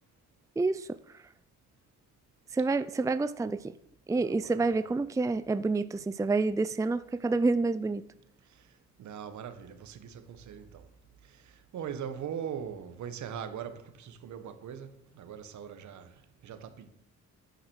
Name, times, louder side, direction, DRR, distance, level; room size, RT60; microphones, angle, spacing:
voice 1, 0.6-1.2 2.5-3.7 4.1-8.0, right 3 dB, 10° right, 0.5 m, -28 dB
voice 2, 4.2-4.7 8.4-10.9 11.2-16.9, right 8 dB, 70° right, 1.5 m, -41 dB
9.9 x 9.4 x 6.4 m
cardioid pair, 90°, 30 cm